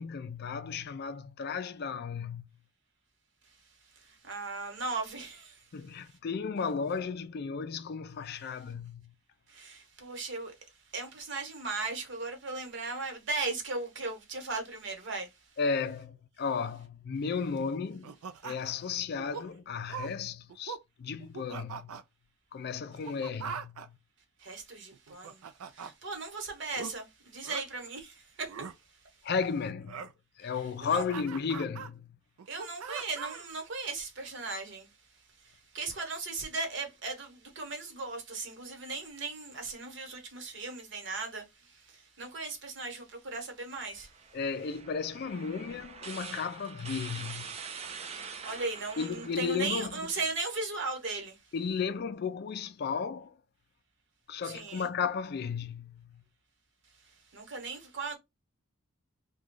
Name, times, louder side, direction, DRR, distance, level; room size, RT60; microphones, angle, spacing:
voice 1, 0.0-2.5 5.7-9.1 15.6-18.1 18.4-21.9 22.5-24.0 29.2-30.0 30.4-32.2 44.3-47.5 49.0-50.1 51.5-53.4 54.3-56.2, left 5 dB, 50° left, 0.4 m, -34 dB
voice 2, 4.0-5.6 9.5-10.5 10.9-15.3 24.4-25.4 25.7-28.5 30.8-31.0 32.5-34.9 35.7-44.1 48.4-51.4 54.4-54.9 57.3-58.1, right 3 dB, 55° right, 1.2 m, -37 dB
sound 1, 18.0-18.8 19.2-19.5 19.9-20.1 20.5-20.8 21.2-22.0 22.9-23.9 24.9-25.9 26.7-26.9 27.4-27.6 28.4-28.7 29.9-30.1 30.6-31.9 32.4-33.5, right 6 dB, 85° right, 0.4 m, -41 dB
sound 2, 43.8-50.3, right 6 dB, 30° right, 0.4 m, -45 dB
3.0 x 2.3 x 3.7 m
head